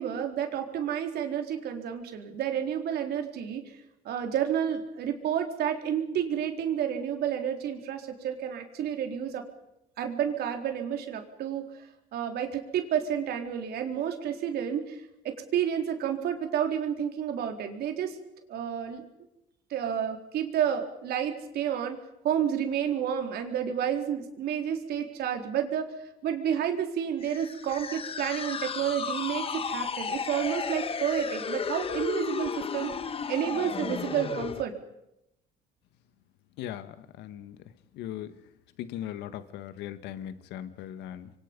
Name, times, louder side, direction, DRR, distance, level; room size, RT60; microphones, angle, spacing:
voice 1, 0.0-3.6 4.0-9.4 10.0-11.7 12.1-18.2 18.5-19.0 19.7-22.0 22.2-32.9 33.3-34.7, right 9 dB, 70° right, 5 dB, 4.1 m, -30 dB
sound 1, 27.2-34.6, left 6 dB, 35° left, 1.4 m, -34 dB
voice 2, 36.6-37.6 37.9-38.3 38.8-41.3, left 11 dB, 85° left, 12 dB, 1.7 m, -39 dB
27.0 x 24.0 x 5.4 m, 0.84 s
cardioid pair, 110°, 17 cm